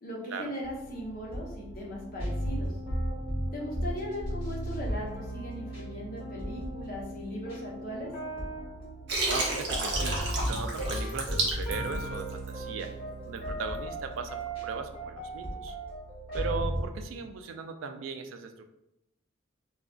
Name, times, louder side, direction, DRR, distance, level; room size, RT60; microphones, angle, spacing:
voice 1, 0.0-2.7 3.5-8.1, equal, 45° left, -3 dB, 0.7 m, -38 dB
sound 1, 0.6-16.9, equal, 25° left, 1.2 m, -36 dB
Water, 9.1-12.5, right 2 dB, 60° right, 0.7 m, -30 dB
voice 2, 9.3-12.9 13.2-15.8 16.3-18.6, right 5 dB, 75° right, 7 dB, 0.3 m, -38 dB
2.3 x 2.3 x 3.7 m, 0.86 s
head